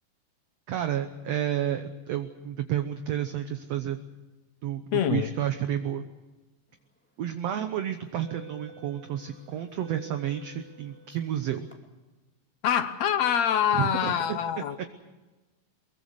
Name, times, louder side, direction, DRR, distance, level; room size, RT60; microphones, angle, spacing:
voice 1, 0.7-4.0 4.6-6.0 7.2-11.7 13.7-14.8, right 10 dB, 65° right, 1.7 m, -31 dB
voice 2, 4.9-5.3 12.6-14.8, left 9 dB, 70° left, 1.8 m, -25 dB
sound 1, 7.0-7.2 7.9-11.7, right 2 dB, 5° left, 1.6 m, -50 dB
24.0 x 22.5 x 6.6 m
omnidirectional pair, 4.0 m